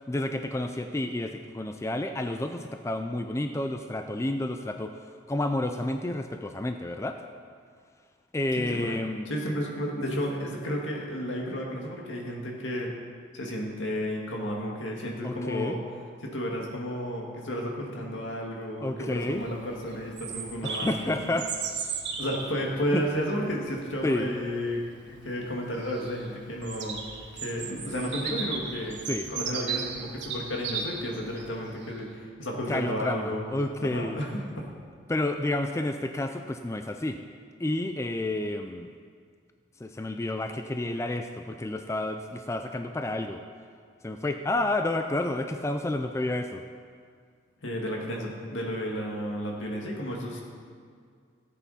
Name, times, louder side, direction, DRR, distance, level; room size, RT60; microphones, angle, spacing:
voice 1, 0.1-7.2 8.3-9.3 15.2-15.8 18.8-19.5 20.6-21.5 22.9-23.0 24.0-24.3 29.1-29.3 32.7-34.2 35.1-37.2 37.6-38.9 39.8-43.4 44.0-46.6, left 1 dB, 15° left, 6 dB, 0.3 m, -30 dB
voice 2, 8.6-12.9 13.3-15.8 16.2-20.9 22.2-27.0 27.3-29.0 29.3-33.4 33.8-34.4 47.6-50.4, equal, 80° left, -1 dB, 2.0 m, -32 dB
Bird vocalization bird call bird song, 19.2-31.9, right 5 dB, 60° right, 1.4 m, -37 dB
14.5 x 8.3 x 4.2 m, 2.1 s
head